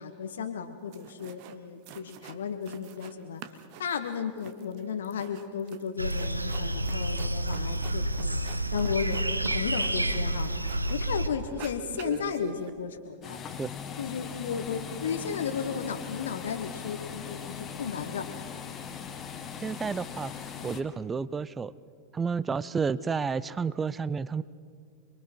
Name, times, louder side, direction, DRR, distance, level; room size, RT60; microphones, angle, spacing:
voice 1, 0.0-3.4 3.8-8.4 8.7-10.5 10.9-13.4 14.0-18.3, left 6 dB, 65° left, 6 dB, 1.1 m, -34 dB
sound 1, 0.6-0.7 0.9-1.6 1.8-3.1 3.4-11.1 11.4-12.7, right 9 dB, 45° right, 1.1 m, -46 dB
sound 2, 6.0-11.3, right 1 dB, 85° right, 0.8 m, -29 dB
sound 3, 13.2-20.8, left 7 dB, 25° left, 1.7 m, -40 dB
voice 2, 19.6-20.3 20.6-21.7 22.1-24.4, right 5 dB, 15° right, 18 dB, 0.5 m, -30 dB
29.0 x 22.0 x 4.5 m, 2.3 s
figure-of-eight pair, 90°, 0 cm